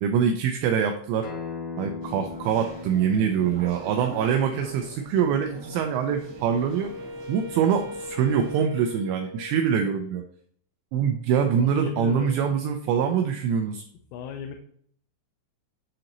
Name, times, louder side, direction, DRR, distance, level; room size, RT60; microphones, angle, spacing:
voice 1, 0.0-1.3 1.8-6.9 7.3-10.2 10.9-13.8, right 7 dB, 90° right, 5 dB, 2.5 m, -24 dB
Acoustic guitar, 1.2-6.4, left 4 dB, 70° left, 2.0 m, -40 dB
sound 1, 2.0-8.6, right 2 dB, 45° right, 1.0 m, -43 dB
Wind instrument woodwind instrument, 5.6-10.0, left 1 dB, 75° right, 2.4 m, -40 dB
voice 2, 11.6-12.4 14.1-14.6, left 7 dB, 90° left, 4 dB, 3.2 m, -36 dB
10.0 x 3.9 x 2.9 m, 0.62 s
omnidirectional pair, 5.7 m